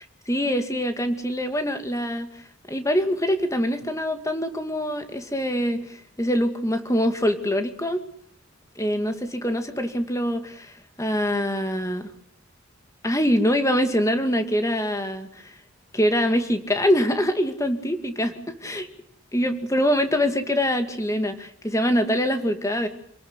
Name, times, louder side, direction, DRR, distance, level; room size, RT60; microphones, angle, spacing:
voice 1, 0.3-8.1 8.8-12.1 13.0-15.6 15.9-18.9 19.3-22.9, equal, 15° left, 7 dB, 2.3 m, -24 dB
28.0 x 18.5 x 8.3 m, 0.65 s
head